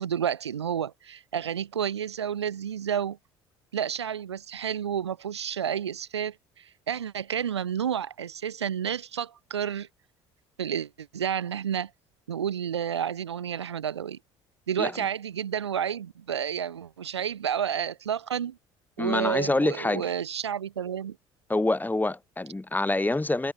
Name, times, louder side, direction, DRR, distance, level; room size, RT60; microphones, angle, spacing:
voice 1, 0.0-3.2 3.7-9.9 10.6-11.9 12.3-14.2 14.7-18.6 19.0-21.1, right 8 dB, 90° right, 1.6 m, -30 dB
voice 2, 19.0-20.1 21.5-23.5, left 2 dB, 15° left, 6.7 m, -26 dB
hypercardioid pair, 60°, 14 cm